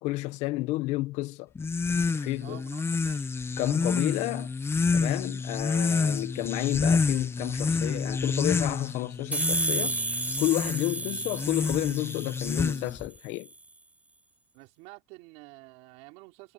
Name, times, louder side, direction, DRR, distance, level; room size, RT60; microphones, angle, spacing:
voice 1, 0.0-1.5 2.1-2.6 3.6-4.5 4.9-10.0 10.4-13.5, left 19 dB, 70° left, 1.5 m, -31 dB
sound 1, 1.6-13.1, left 4 dB, 20° left, 1.1 m, -29 dB
voice 2, 2.4-3.3 14.5-16.5, right 25 dB, 75° right, 5.3 m, -49 dB
sound 2, 9.3-12.9, right 2 dB, 10° right, 1.0 m, -32 dB
supercardioid pair, 105°, 12 cm